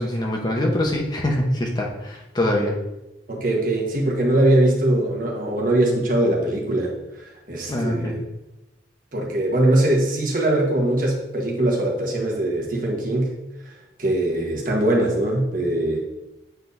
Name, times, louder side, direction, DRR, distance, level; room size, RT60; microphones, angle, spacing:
voice 1, 0.0-2.8 7.7-8.1, left 1 dB, 25° left, 0 dB, 0.9 m, -23 dB
voice 2, 3.3-6.9 7.5-8.2 9.1-13.4 14.0-16.0, right 1 dB, 50° right, -1 dB, 1.3 m, -21 dB
8.0 x 4.5 x 2.7 m, 0.97 s
head